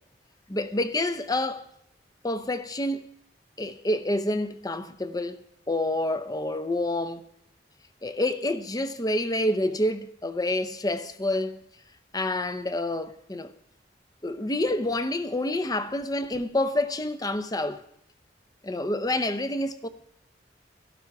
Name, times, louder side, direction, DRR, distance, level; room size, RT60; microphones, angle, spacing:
voice 1, 0.5-1.7 2.2-3.1 3.6-7.2 8.0-11.6 12.1-13.5 14.2-17.8 18.6-19.9, left 1 dB, 20° left, 0.7 m, -28 dB
14.0 x 12.0 x 4.7 m
head